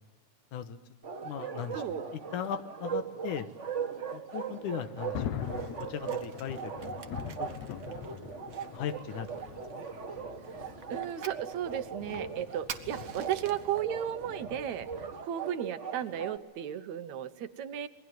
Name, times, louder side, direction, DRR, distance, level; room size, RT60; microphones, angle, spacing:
Bark, 1.0-16.4, right 6 dB, 40° right, 1.0 m, -39 dB
voice 1, 1.2-3.5 4.1-5.5 5.8-8.3 8.7-9.9, left 9 dB, 85° left, 10 dB, 2.7 m, -39 dB
Thunder, 4.5-15.3, left 9 dB, 65° left, 2.3 m, -44 dB
Fire, 5.4-13.8, right 7 dB, 90° right, 0.7 m, -50 dB
voice 2, 10.6-14.9 15.2-17.9, right 10 dB, 70° right, 11 dB, 2.2 m, -35 dB
28.0 x 21.5 x 9.3 m, 1.3 s
omnidirectional pair, 3.5 m